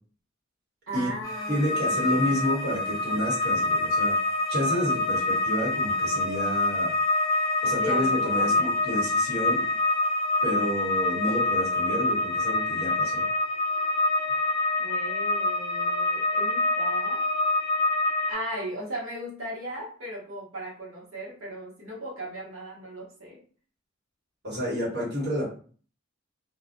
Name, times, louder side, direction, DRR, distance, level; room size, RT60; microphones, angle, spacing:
voice 1, 0.9-2.4 7.8-8.7 14.8-17.2 18.3-23.4, right 1 dB, 70° right, -4 dB, 0.9 m, -37 dB
sound 1, 1.2-18.3, left 2 dB, 20° left, 0.7 m, -26 dB
voice 2, 1.5-4.2 4.5-6.9 7.6-9.7 10.4-13.2 24.4-25.5, equal, 50° right, -7 dB, 1.3 m, -30 dB
2.3 x 2.1 x 2.5 m, 0.42 s
head